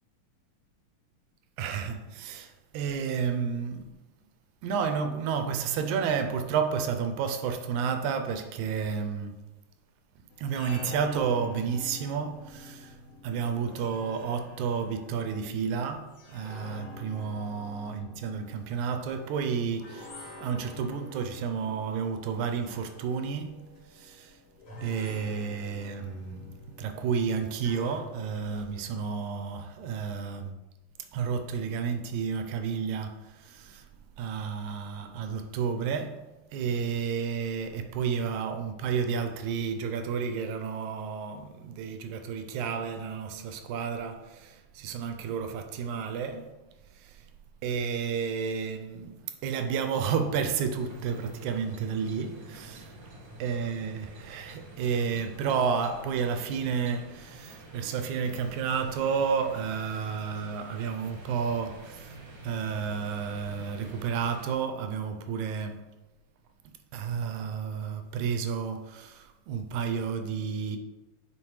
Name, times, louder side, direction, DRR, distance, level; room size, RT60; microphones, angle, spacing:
voice 1, 1.6-4.0 4.6-9.5 10.4-13.0 13.2-24.4 24.8-26.5 26.8-30.6 31.1-33.9 34.2-46.6 46.9-47.3 47.6-53.0 53.4-62.2 62.4-65.9 66.7-70.8, right 6 dB, 80° right, 1.9 m, -31 dB
sound 1, 10.3-28.9, left 2 dB, 55° left, 2.4 m, -47 dB
sound 2, 50.8-64.6, right 2 dB, 50° right, 1.4 m, -48 dB
8.7 x 4.5 x 3.1 m
omnidirectional pair, 3.6 m